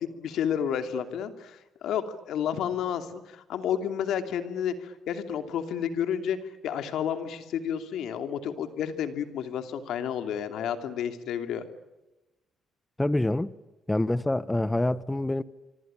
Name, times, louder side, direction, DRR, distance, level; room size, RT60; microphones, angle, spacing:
voice 1, 0.2-6.4 6.6-11.6, left 8 dB, 80° left, 2.8 m, -31 dB
voice 2, 13.0-13.5 13.9-15.4, left 1 dB, 10° left, 1.0 m, -26 dB
26.0 x 26.0 x 9.0 m
cardioid pair, 90°, 0 cm